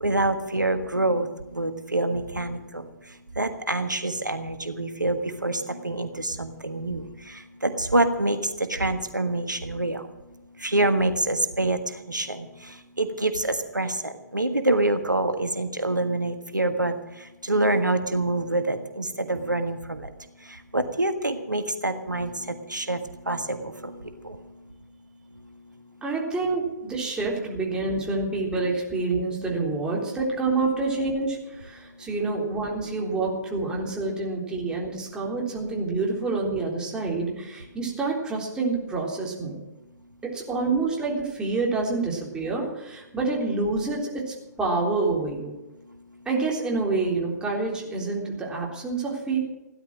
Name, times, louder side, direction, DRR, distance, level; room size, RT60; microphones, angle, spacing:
voice 1, 0.0-2.9 3.4-10.0 10.6-11.8 12.1-16.9 17.4-20.1 20.7-23.0 23.3-24.4, right 2 dB, 90° right, 8 dB, 1.5 m, -26 dB
voice 2, 26.0-39.6 40.2-45.5 46.3-49.4, right 3 dB, 10° right, -3 dB, 3.7 m, -27 dB
16.5 x 11.0 x 6.4 m, 1.0 s
figure-of-eight pair, 130°, 10 cm